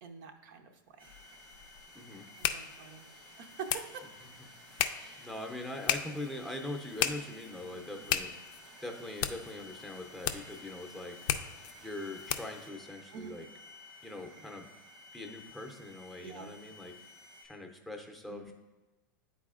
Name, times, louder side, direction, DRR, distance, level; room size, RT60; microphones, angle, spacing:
voice 1, 0.0-1.2 2.4-3.1 3.4-4.0 5.0-5.3 7.9-8.1 13.1-13.4 16.2-16.5 18.3-18.5, right 6 dB, 65° right, 5 dB, 0.7 m, -46 dB
sound 1, 1.0-17.5, left 2 dB, 85° right, 1.4 m, -53 dB
sound 2, 1.1-12.7, left 10 dB, 65° left, 0.4 m, -37 dB
voice 2, 1.9-2.3 4.7-4.9 5.2-8.3 8.8-11.4 11.8-13.4 14.0-14.7 15.1-16.9 17.4-18.5, left 2 dB, ahead, 2 dB, 0.6 m, -42 dB
9.4 x 4.1 x 2.4 m, 1.1 s
hypercardioid pair, 110°, 12 cm